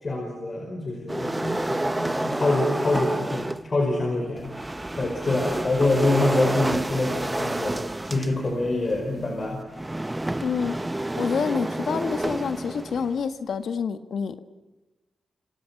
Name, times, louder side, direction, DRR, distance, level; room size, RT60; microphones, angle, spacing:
voice 1, 0.0-4.5 5.0-7.8 8.0-9.6, left 2 dB, 40° left, 2 dB, 5.0 m, -25 dB
sound 1, 1.1-3.7 4.4-13.2, right 1 dB, 15° right, 0.9 m, -29 dB
voice 2, 10.4-10.8 11.2-14.4, left 6 dB, 80° left, 9 dB, 1.6 m, -27 dB
28.0 x 26.0 x 5.9 m, 1.1 s
cardioid pair, 95°, 0 cm